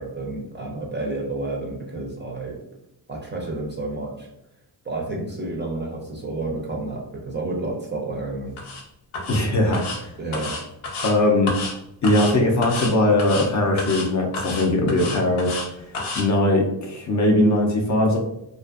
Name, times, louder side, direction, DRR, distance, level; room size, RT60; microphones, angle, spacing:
voice 1, 0.0-2.6 3.1-4.3 4.8-8.6 10.2-10.6, right 2 dB, 25° right, -1 dB, 0.4 m, -30 dB
sound 1, 8.6-8.8 9.1-9.4 9.7-10.0 10.3-11.1 11.5-11.7 12.0-12.3 12.6-12.9 13.2-13.5 13.8-14.1 14.3-15.7 15.9-16.2, left 3 dB, 90° left, 0.8 m, -30 dB
voice 2, 9.3-10.1 11.0-11.5 12.0-15.6 16.2-18.2, left 1 dB, 40° left, 1 dB, 0.5 m, -20 dB
2.5 x 2.4 x 2.3 m, 0.84 s
cardioid pair, 105°, 47 cm